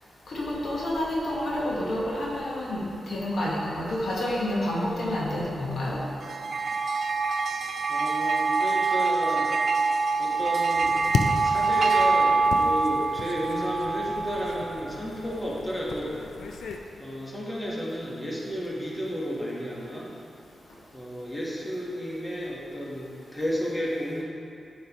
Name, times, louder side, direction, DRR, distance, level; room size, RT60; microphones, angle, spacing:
voice 1, 0.3-6.0, left 1 dB, 70° left, -4 dB, 1.3 m, -29 dB
sound 1, 6.2-14.9, right 4 dB, 65° right, 0.4 m, -25 dB
voice 2, 7.9-9.5 10.2-11.0 11.4-16.2 17.0-20.1 20.9-24.2, equal, 15° left, -5 dB, 1.2 m, -32 dB
sound 2, 10.9-16.8, left 4 dB, 90° left, 0.4 m, -34 dB
9.1 x 5.3 x 3.0 m, 2.6 s
cardioid pair, 90°, 0 cm